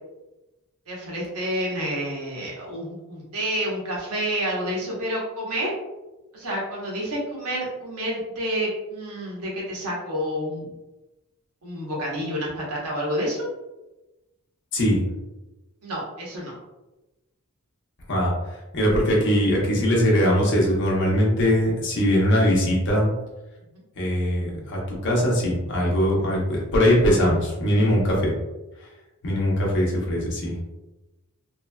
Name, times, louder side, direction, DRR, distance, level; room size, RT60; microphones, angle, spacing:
voice 1, 0.9-5.7 6.3-10.7 11.6-13.5 15.8-16.5, equal, 80° right, -4 dB, 1.0 m, -29 dB
voice 2, 14.7-15.0 18.1-18.3 18.7-23.1 24.0-28.3 29.2-30.5, equal, 55° left, -2 dB, 0.8 m, -21 dB
3.0 x 2.6 x 2.2 m, 1.0 s
head